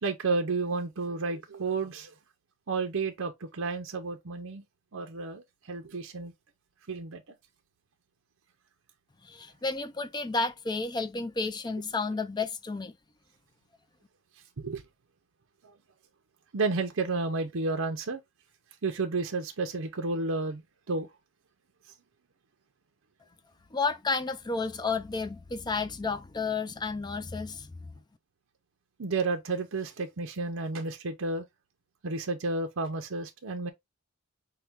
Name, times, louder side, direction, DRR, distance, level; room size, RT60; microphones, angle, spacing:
voice 1, 0.0-2.1 2.7-4.6 4.9-6.3 6.9-7.2 14.6-14.8 15.6-15.8 16.5-18.2 18.8-20.6 20.9-21.1 29.0-31.4 32.0-33.7, right 3 dB, 70° right, 0.7 m, -31 dB
voice 2, 9.2-12.9 23.7-27.7, left 4 dB, 20° left, 0.4 m, -31 dB
5.7 x 2.2 x 3.5 m
head